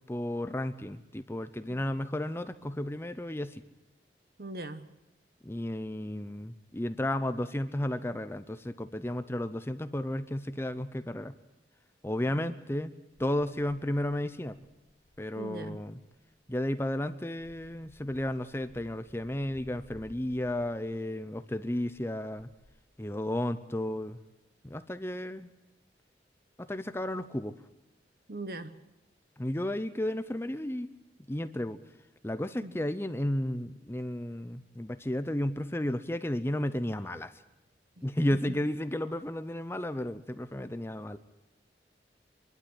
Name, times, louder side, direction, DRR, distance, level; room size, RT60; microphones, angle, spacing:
voice 1, 0.1-3.6 5.4-11.3 12.0-12.9 13.2-14.6 15.2-16.0 16.5-22.5 23.0-24.2 24.6-25.5 26.6-27.6 29.4-30.9 31.3-31.8 32.2-37.3 38.0-41.2, left 1 dB, 15° left, 11 dB, 0.7 m, -33 dB
voice 2, 4.4-4.9 12.3-12.6 15.4-15.8 28.3-28.8 32.6-32.7 38.0-38.1 38.5-38.6, right 1 dB, 60° right, 10 dB, 1.2 m, -40 dB
sound 1, 13.1-16.2 16.7-21.4 21.7-22.8, left 1 dB, 85° left, 1.3 m, -59 dB
24.5 x 12.0 x 9.7 m, 0.95 s
head